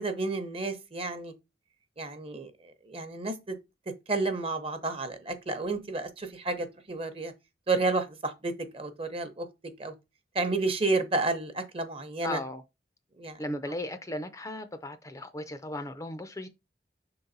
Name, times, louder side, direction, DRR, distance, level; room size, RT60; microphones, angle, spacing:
voice 1, 0.0-1.3 2.0-2.5 2.9-3.6 4.1-7.3 7.7-9.5 9.8-9.9 10.3-12.4 13.2-13.4, right 3 dB, 35° right, 0.9 m, -31 dB
voice 2, 12.2-12.6 13.4-16.5, left 1 dB, 20° left, 0.5 m, -36 dB
6.4 x 3.9 x 4.0 m
head